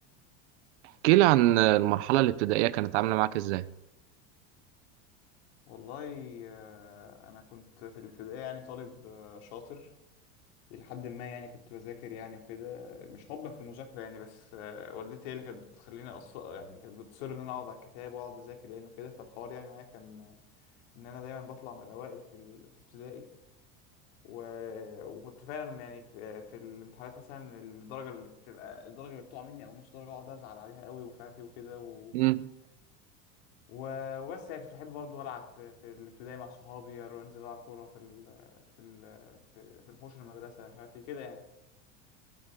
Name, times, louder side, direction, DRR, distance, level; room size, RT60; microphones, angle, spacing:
voice 1, 1.0-3.6 32.1-32.5, right 16 dB, 80° right, 0.8 m, -23 dB
voice 2, 5.7-9.9 10.7-20.4 20.9-23.3 24.2-32.2 33.7-41.6, left 7 dB, 75° left, 2.9 m, -44 dB
16.5 x 14.5 x 3.8 m
supercardioid pair, 150°, 34 cm